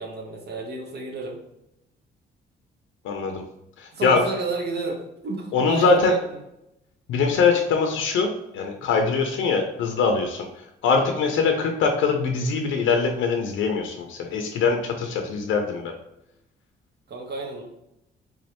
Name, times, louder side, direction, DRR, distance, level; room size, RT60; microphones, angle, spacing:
voice 1, 0.0-1.4 3.9-6.4 17.1-17.6, right 3 dB, 55° right, 1 dB, 0.9 m, -31 dB
voice 2, 3.0-3.4 3.8-4.2 5.5-6.1 7.1-10.5 10.8-15.9, left 4 dB, 80° left, 3 dB, 0.5 m, -22 dB
3.6 x 3.2 x 2.8 m, 0.83 s
cardioid pair, 90°, 20 cm